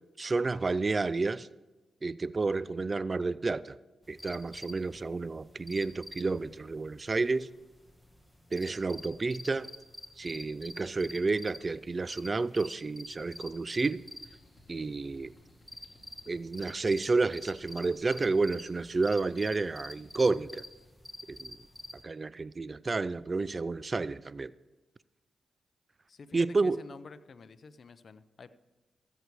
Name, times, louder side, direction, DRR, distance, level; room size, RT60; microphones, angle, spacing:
voice 1, 0.2-1.5 2.0-3.8 4.1-7.5 8.5-9.7 10.2-14.0 14.7-15.3 16.3-20.6 21.3-21.6 22.0-24.5 26.3-26.8, right 3 dB, 40° right, 0.3 m, -30 dB
sound 1, 4.0-22.0, left 1 dB, 5° left, 1.4 m, -49 dB
sound 2, 13.1-20.9, left 1 dB, 30° left, 3.9 m, -64 dB
voice 2, 26.1-28.5, left 4 dB, 55° left, 0.6 m, -49 dB
14.5 x 8.2 x 4.6 m
cardioid pair, 55°, 0 cm